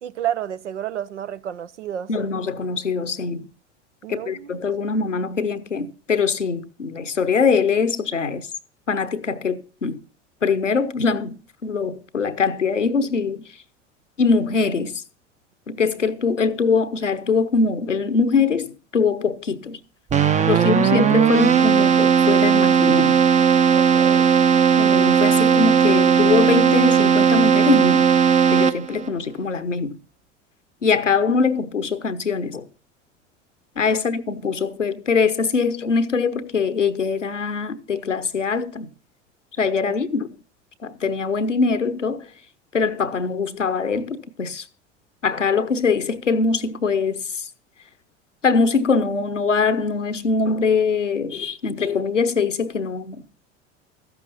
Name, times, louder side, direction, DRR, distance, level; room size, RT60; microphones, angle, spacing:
voice 1, 0.0-2.1 4.0-4.6 20.4-20.7 23.7-24.4 33.9-34.0 39.8-40.0, right 10 dB, 75° right, 0.8 m, -31 dB
voice 2, 2.1-3.5 4.1-8.5 8.9-10.0 10.4-13.5 14.2-15.0 15.7-19.8 20.5-23.2 24.8-28.1 28.5-30.0 30.8-32.7 33.8-38.9 39.6-40.3 40.8-42.3 42.7-44.6 45.2-47.5 48.4-53.3, left 5 dB, 85° left, 0.9 m, -22 dB
Keyboard (musical), 20.1-29.1, right 7 dB, 20° right, 0.7 m, -17 dB
14.0 x 11.5 x 4.1 m
figure-of-eight pair, 75°, 36 cm